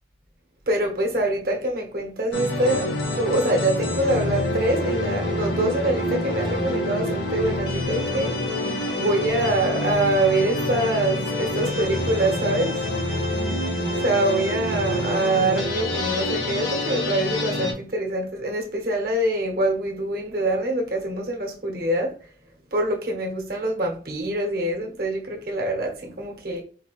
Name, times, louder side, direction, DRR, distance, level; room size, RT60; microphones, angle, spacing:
voice 1, 0.7-8.4 8.9-12.9 14.0-22.1 22.7-26.6, right 1 dB, 55° right, 1.1 m, -25 dB
sound 1, 2.3-17.7, left 1 dB, 90° left, 1.5 m, -26 dB
4.6 x 2.8 x 3.1 m
head